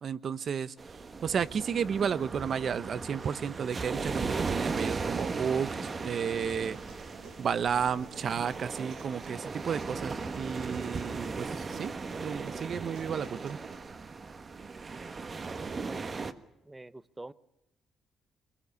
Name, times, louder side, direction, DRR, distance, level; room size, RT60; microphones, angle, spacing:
voice 1, 0.0-5.8 6.0-6.8 7.4-13.6, right 7 dB, 55° right, 0.8 m, -32 dB
sound 1, 0.8-16.3, right 4 dB, 35° right, 1.3 m, -37 dB
Human voice, 5.8-13.8, right 4 dB, 85° right, 4.9 m, -51 dB
voice 2, 16.7-17.3, right 2 dB, 15° right, 0.8 m, -46 dB
22.0 x 20.5 x 8.2 m
cardioid pair, 90°, 0 cm